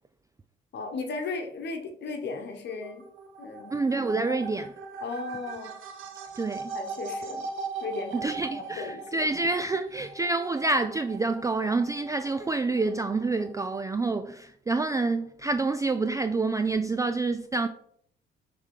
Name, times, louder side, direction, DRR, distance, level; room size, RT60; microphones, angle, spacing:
voice 1, 0.7-3.1 3.4-3.8 4.3-4.4 5.0-5.8 6.7-7.5 7.8-9.2, left 3 dB, 60° left, 1.2 m, -36 dB
sound 1, 2.7-13.9, right 4 dB, 85° right, 0.9 m, -40 dB
voice 2, 3.7-4.7 6.4-6.7 8.1-17.7, right 3 dB, 15° right, 0.3 m, -27 dB
6.5 x 3.6 x 4.8 m
cardioid pair, 90°, 20 cm